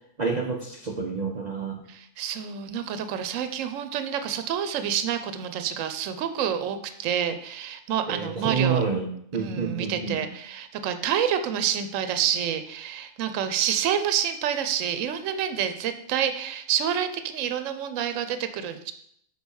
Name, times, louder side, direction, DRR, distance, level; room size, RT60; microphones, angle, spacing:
voice 1, 0.2-1.8 8.1-9.1 9.3-10.2, right 5 dB, 50° right, 1 dB, 0.5 m, -28 dB
voice 2, 1.9-8.8 9.3-18.9, right 9 dB, 70° right, 9 dB, 1.0 m, -28 dB
5.4 x 4.5 x 6.2 m, 0.71 s
omnidirectional pair, 1.4 m